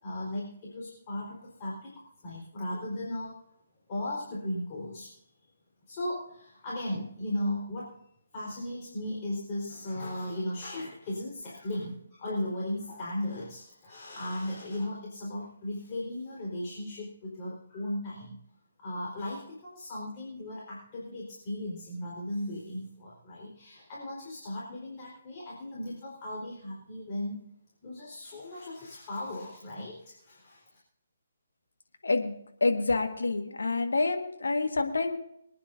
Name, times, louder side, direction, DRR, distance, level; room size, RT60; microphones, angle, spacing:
voice 1, 0.0-3.4 3.9-5.1 5.9-7.9 8.3-18.4 18.8-27.4 27.8-30.8, left 1 dB, 30° left, -5 dB, 4.4 m, -36 dB
voice 2, 32.0-35.2, left 3 dB, 70° left, 5 dB, 1.7 m, -28 dB
26.0 x 9.7 x 2.7 m, 0.74 s
figure-of-eight pair, 140°, 0 cm